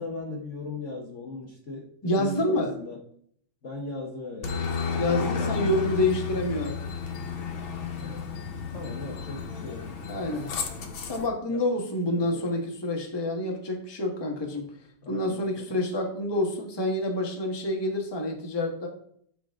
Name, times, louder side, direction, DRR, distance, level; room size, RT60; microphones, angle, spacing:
voice 1, 0.0-3.0 3.6-4.5 5.1-5.7 7.9-8.4 8.7-9.9 11.5-12.6 15.0-15.6, left 3 dB, 45° left, 0 dB, 1.2 m, -39 dB
voice 2, 2.0-2.7 5.0-6.8 10.1-10.5 11.1-14.7 15.1-18.9, left 1 dB, 15° left, 1 dB, 1.1 m, -28 dB
Aircraft, 4.4-11.3, left 5 dB, 85° left, 1.9 m, -32 dB
12.5 x 5.1 x 3.6 m, 0.64 s
omnidirectional pair, 2.1 m